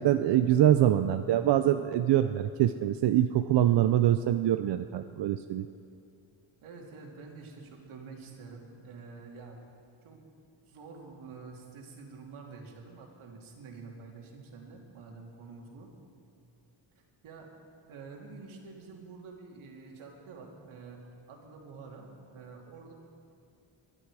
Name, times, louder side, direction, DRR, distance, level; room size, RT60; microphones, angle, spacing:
voice 1, 0.0-5.7, right 12 dB, 55° right, 9 dB, 0.6 m, -24 dB
voice 2, 6.6-9.6 10.0-10.2 10.7-15.9 17.2-17.5 17.9-21.0 21.3-22.9, right 4 dB, 75° right, 0 dB, 2.7 m, -48 dB
22.0 x 12.0 x 4.8 m, 2.5 s
cardioid pair, 130°, 49 cm